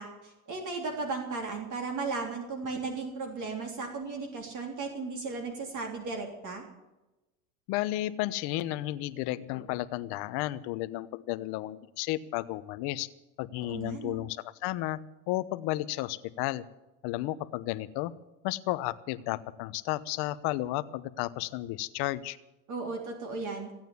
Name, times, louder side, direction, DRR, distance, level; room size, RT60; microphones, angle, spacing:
voice 1, 0.0-6.6 13.6-14.2 22.7-23.7, right 4 dB, 40° right, 2 dB, 3.5 m, -35 dB
voice 2, 7.7-13.1 13.4-14.4 14.6-15.0 15.3-16.6 17.0-18.1 18.4-22.4, left 16 dB, 60° left, 14 dB, 1.0 m, -33 dB
15.5 x 9.1 x 9.4 m, 1.0 s
supercardioid pair, 110°, 44 cm